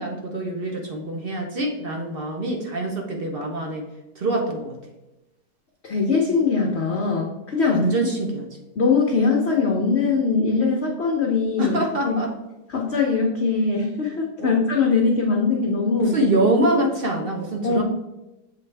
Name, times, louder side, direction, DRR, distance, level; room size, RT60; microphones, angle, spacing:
voice 1, 0.0-3.8 4.1-4.8 7.7-8.5 11.6-12.3 14.4-14.5 16.0-17.8, right 1 dB, 60° right, 2 dB, 0.6 m, -24 dB
voice 2, 5.8-7.9 8.8-12.2 12.7-16.2 17.6-17.8, left 4 dB, 60° left, 0 dB, 0.6 m, -21 dB
7.3 x 4.1 x 3.3 m, 0.98 s
omnidirectional pair, 2.0 m